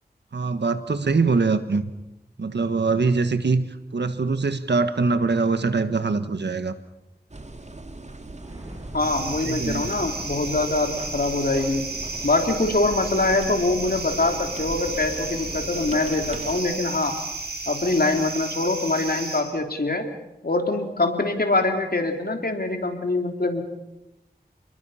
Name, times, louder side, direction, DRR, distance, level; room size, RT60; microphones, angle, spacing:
voice 1, 0.3-1.9 2.4-6.7 9.4-9.9, right 4 dB, 90° right, 11 dB, 1.4 m, -23 dB
sound 1, 7.3-16.6, right 2 dB, 40° right, 2.2 m, -39 dB
sound 2, 8.3-19.4, equal, 25° right, 7.4 m, -44 dB
voice 2, 8.9-11.9 12.2-17.2 17.7-20.0 20.4-23.6, left 2 dB, 60° left, 4 dB, 3.4 m, -24 dB
sound 3, 9.0-19.4, right 3 dB, 65° right, 5.3 m, -33 dB
29.5 x 21.5 x 5.7 m, 0.95 s
wide cardioid pair, 50°, 17 cm